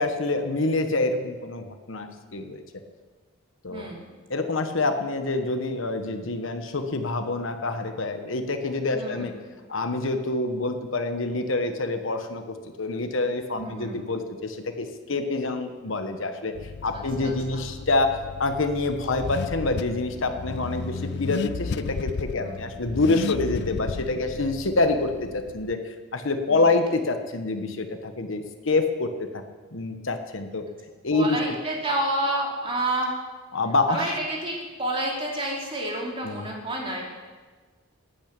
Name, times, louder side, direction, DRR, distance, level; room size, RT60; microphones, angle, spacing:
voice 1, 0.0-2.8 3.6-3.9 4.3-9.3 9.7-12.4 12.8-16.6 16.8-29.4 29.7-30.7 31.0-31.6 33.5-34.1 36.2-36.5, left 2 dB, 65° left, 7 dB, 1.1 m, -26 dB
voice 2, 3.7-4.1 8.9-9.3 13.6-14.0 16.9-17.3 22.3-22.6 26.5-26.7 31.1-33.1 33.9-37.0, right 1 dB, 25° right, -1 dB, 2.8 m, -29 dB
Car / Accelerating revving vroom, 16.5-25.7, left 5 dB, 50° left, 0.3 m, -34 dB
12.0 x 9.9 x 8.7 m, 1.4 s
head